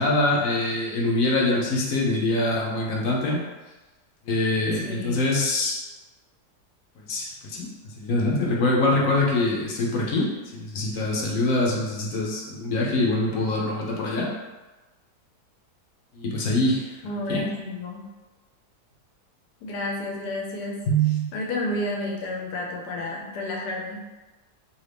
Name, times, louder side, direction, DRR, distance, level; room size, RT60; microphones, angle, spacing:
voice 1, 0.0-3.4 4.3-5.7 7.0-14.3 16.1-17.0 17.3-17.5 20.9-21.3, left 1 dB, 65° left, -2 dB, 1.0 m, -24 dB
voice 2, 4.7-5.2 17.0-18.0 19.6-20.8 21.3-24.0, left 2 dB, 90° left, -1 dB, 1.3 m, -31 dB
2.9 x 2.7 x 3.3 m, 1.2 s
omnidirectional pair, 1.7 m